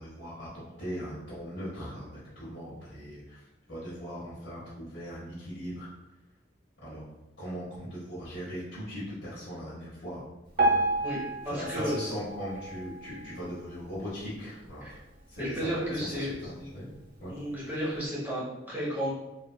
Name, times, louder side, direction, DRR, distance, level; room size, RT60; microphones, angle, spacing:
voice 1, 0.0-3.4 3.7-5.9 6.8-7.0 7.4-10.2 10.9-11.1 11.4-15.0 15.3-16.9 17.2-17.3, equal, 65° left, -11 dB, 1.1 m, -39 dB
Piano, 10.6-13.7 14.2-14.4 14.7-14.8 15.5-15.6 16.1-16.2, right 2 dB, 50° right, 0.8 m, -30 dB
voice 2, 11.4-11.9 14.8-14.9 15.4-16.3 17.3-19.1, equal, 10° right, -8 dB, 1.0 m, -32 dB
3.5 x 2.4 x 2.2 m, 1.0 s
head